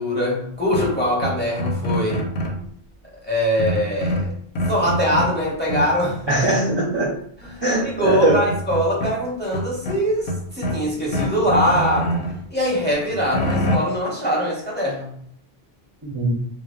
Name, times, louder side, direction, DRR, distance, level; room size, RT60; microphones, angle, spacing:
voice 1, 0.0-2.3 3.2-4.3 4.7-6.2 7.4-12.1 12.5-15.1, equal, 10° left, -4 dB, 0.6 m, -22 dB
sound 1, 0.7-2.7 3.6-5.4 5.7-6.1 7.4-7.5 7.8-9.1 9.5-10.8 11.1-12.4 12.8-13.8, equal, 85° left, 0.8 m, -25 dB
voice 2, 6.3-7.1 7.6-8.4 16.0-16.3, right 1 dB, 35° right, -5 dB, 0.5 m, -20 dB
2.1 x 2.0 x 3.5 m, 0.63 s
omnidirectional pair, 1.1 m